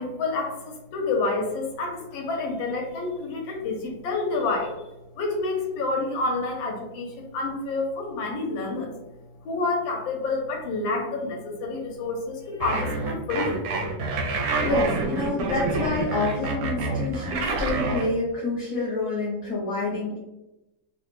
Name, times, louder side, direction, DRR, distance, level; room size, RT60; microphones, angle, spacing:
voice 1, 0.0-4.7 5.2-8.9 9.4-13.6, left 3 dB, 80° left, 1 dB, 1.4 m, -28 dB
sound 1, 12.6-18.1, right 3 dB, 75° right, 1.0 m, -27 dB
voice 2, 14.6-20.2, left 2 dB, 65° left, -5 dB, 1.1 m, -27 dB
3.7 x 2.1 x 2.9 m, 0.96 s
omnidirectional pair, 2.2 m